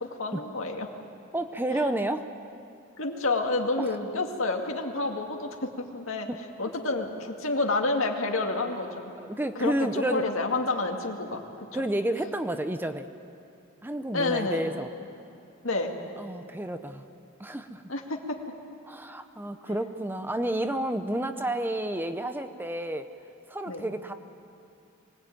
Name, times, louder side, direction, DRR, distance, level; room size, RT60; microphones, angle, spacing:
voice 1, 0.0-0.9 3.0-6.3 6.6-9.1 9.6-11.8 14.1-14.6 15.6-15.9 17.9-18.4 19.7-19.8 23.7-23.8, left 2 dB, 75° left, 2 dB, 2.2 m, -29 dB
voice 2, 1.3-2.3 6.3-6.4 9.2-10.3 11.7-13.1 13.8-14.9 16.2-17.0 17.4-17.8 18.9-23.1 23.5-24.1, right 1 dB, 10° right, 8 dB, 0.7 m, -30 dB
24.0 x 18.0 x 9.2 m, 2.6 s
head